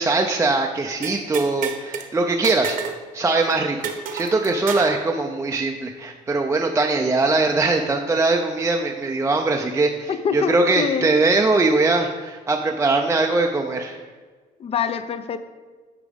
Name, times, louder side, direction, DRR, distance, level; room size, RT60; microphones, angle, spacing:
voice 1, 0.0-2.8 3.1-14.0, right 3 dB, 15° right, 2 dB, 0.5 m, -21 dB
sound 1, 1.0-2.1 2.4-3.0 3.3-3.4 3.8-5.0, right 7 dB, 55° right, 0.9 m, -30 dB
voice 2, 10.1-11.1 14.6-15.4, left 7 dB, 35° left, 11 dB, 0.5 m, -25 dB
9.8 x 4.8 x 3.5 m, 1.5 s
cardioid pair, 110°, 17 cm